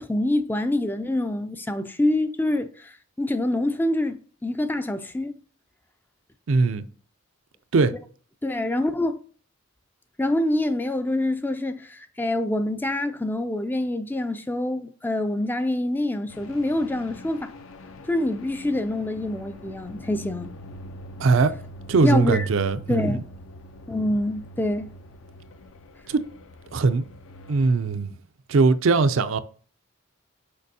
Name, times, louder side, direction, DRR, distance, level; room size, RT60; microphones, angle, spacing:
voice 1, 0.0-5.4 8.4-9.2 10.2-17.5 18.1-20.5 22.0-22.5 22.9-23.2 23.9-24.9, left 1 dB, 10° left, 0.3 m, -26 dB
voice 2, 6.5-6.8 7.7-7.9 21.2-21.5 21.9-23.2 26.1-26.2 26.7-27.0 27.5-28.2 28.5-29.4, right 4 dB, 65° right, 0.4 m, -20 dB
sound 1, 16.3-27.7, equal, 70° left, 0.6 m, -44 dB
6.5 x 5.3 x 2.7 m
head